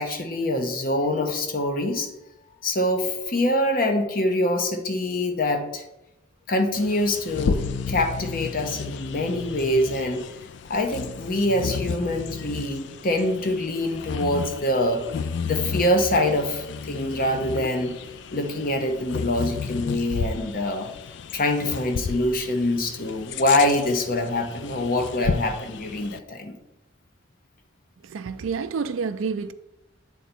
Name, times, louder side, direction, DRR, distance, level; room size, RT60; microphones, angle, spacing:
voice 1, 0.0-2.1 2.6-5.8 6.5-10.3 10.7-15.0 15.4-17.9 18.3-20.9 21.3-26.6, left 1 dB, 45° left, 0.8 m, -25 dB
Bird vocalization bird call bird song, 6.7-26.2, left 5 dB, 60° left, 0.3 m, -33 dB
voice 2, 28.0-29.5, right 5 dB, 80° right, 0.4 m, -29 dB
8.2 x 4.0 x 4.3 m
head